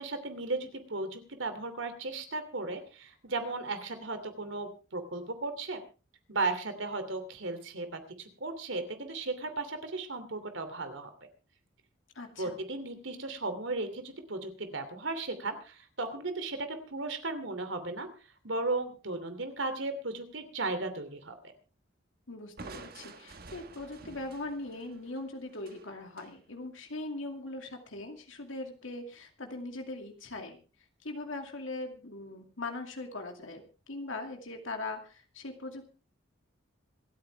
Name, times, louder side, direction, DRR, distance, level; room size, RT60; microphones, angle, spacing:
voice 1, 0.0-5.8 6.3-11.1 12.4-18.1 18.4-21.3, right 3 dB, 75° right, 8 dB, 2.8 m, -35 dB
voice 2, 12.1-12.6 22.3-30.6 31.0-35.9, left 2 dB, 80° left, 4 dB, 2.3 m, -40 dB
Crushing, 22.6-26.4, right 3 dB, 50° right, 1.4 m, -49 dB
26.5 x 9.5 x 3.4 m, 0.35 s
head